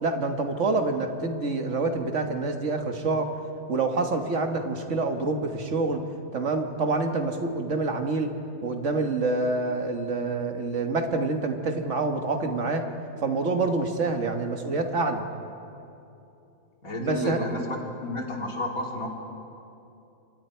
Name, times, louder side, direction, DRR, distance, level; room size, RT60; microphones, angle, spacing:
voice 1, 0.0-3.3 3.7-6.0 6.3-8.3 8.6-12.9 13.2-15.3 17.0-17.4, right 3 dB, 60° right, 4 dB, 1.9 m, -27 dB
voice 2, 16.8-19.1, left 1 dB, 85° left, -1 dB, 3.5 m, -31 dB
28.5 x 25.0 x 4.6 m, 2.8 s
omnidirectional pair, 1.4 m